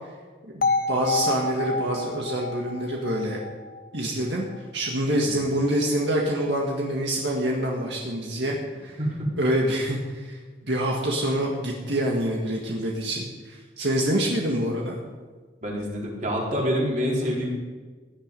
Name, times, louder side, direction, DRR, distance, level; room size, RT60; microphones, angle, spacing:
voice 1, 0.5-3.4 3.9-4.5 4.7-9.0 9.4-10.4 10.7-15.0, right 1 dB, 75° right, -1 dB, 1.9 m, -26 dB
sound 1, 0.6-4.6, left 3 dB, 50° left, 0.7 m, -29 dB
voice 2, 15.6-17.5, equal, 40° right, -3 dB, 4.1 m, -26 dB
17.5 x 10.5 x 5.4 m, 1.4 s
head